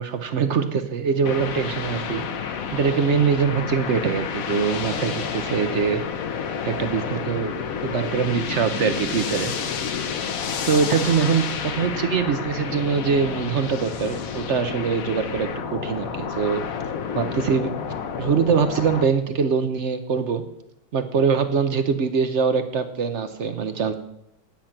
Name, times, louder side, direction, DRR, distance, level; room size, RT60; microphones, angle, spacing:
voice 1, 0.0-6.0 6.6-7.5 7.8-9.5 10.6-16.6 17.1-17.7 18.2-20.4 20.9-23.9, right 6 dB, 60° right, 9 dB, 0.7 m, -23 dB
sound 1, 1.3-19.1, left 7 dB, 55° left, 1.1 m, -30 dB
9.0 x 8.9 x 5.8 m, 0.79 s
omnidirectional pair, 2.0 m